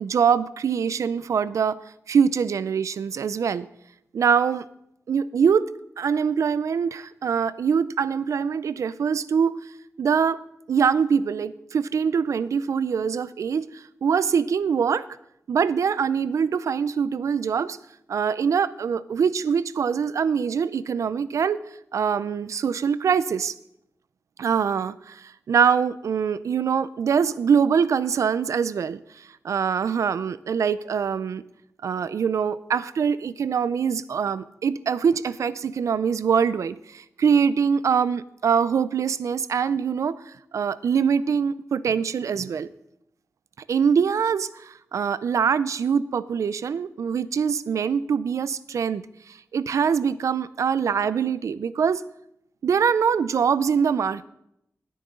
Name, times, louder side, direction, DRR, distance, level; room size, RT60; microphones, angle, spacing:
voice 1, 0.0-1.8 2.1-3.7 4.1-4.6 5.1-5.7 6.0-9.6 10.0-10.4 10.7-15.0 15.5-17.8 18.1-21.6 21.9-23.5 24.4-31.4 31.8-42.7 43.7-52.0 52.6-54.3, right 6 dB, 90° right, 17 dB, 0.4 m, -23 dB
17.0 x 9.3 x 3.7 m, 0.79 s
wide cardioid pair, 155°, 5 cm